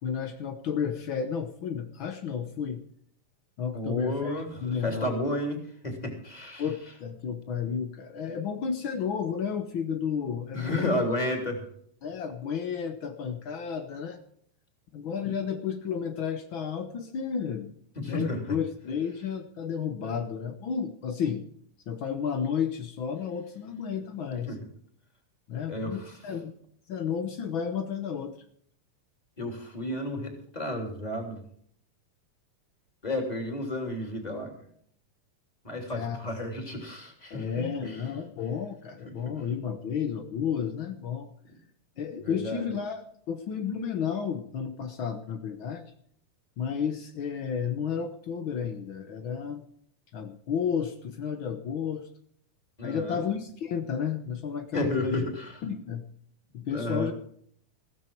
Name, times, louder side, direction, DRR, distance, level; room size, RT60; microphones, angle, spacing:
voice 1, 0.0-2.8 3.6-4.3 4.6-5.2 6.6-11.0 12.0-14.2 14.9-17.8 18.0-21.4 21.9-24.5 25.5-26.5 26.9-28.3 35.9-36.2 37.3-41.3 42.0-45.9 46.6-49.6 50.1-52.1 52.8-55.2 55.6-56.0 56.5-57.1, left 7 dB, 80° left, 7 dB, 1.1 m, -32 dB
voice 2, 3.7-6.7 10.5-11.7 17.9-18.4 24.5-24.7 25.7-26.2 29.4-31.4 33.0-34.5 35.6-38.1 42.2-42.7 52.8-53.2 54.7-55.6 56.7-57.1, left 1 dB, 10° left, 4 dB, 3.0 m, -32 dB
15.5 x 14.5 x 4.6 m, 0.62 s
omnidirectional pair, 3.9 m